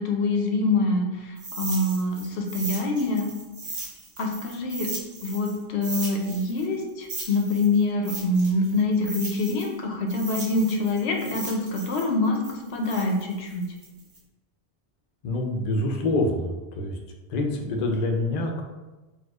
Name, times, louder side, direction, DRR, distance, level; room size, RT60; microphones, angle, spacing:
voice 1, 0.0-3.3 4.2-4.9 5.2-13.6, left 2 dB, 85° left, 2 dB, 0.8 m, -25 dB
sound 1, 1.4-5.6 5.8-9.7 10.1-14.2, right 2 dB, 60° right, 1.0 m, -37 dB
voice 2, 15.2-17.0 17.3-18.6, left 2 dB, 55° left, 1 dB, 0.5 m, -26 dB
4.2 x 2.3 x 2.3 m, 1.1 s
omnidirectional pair, 1.1 m